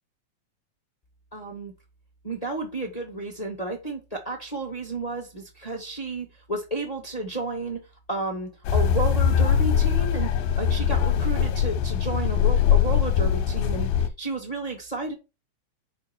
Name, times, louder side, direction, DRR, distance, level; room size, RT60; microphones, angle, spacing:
voice 1, 1.3-1.7 2.2-7.8 8.1-15.1, right 2 dB, 20° left, 0 dB, 1.0 m, -32 dB
sound 1, 8.6-14.1, left 8 dB, 80° left, 2.1 m, -22 dB
5.5 x 4.4 x 5.9 m, 0.27 s
omnidirectional pair, 3.4 m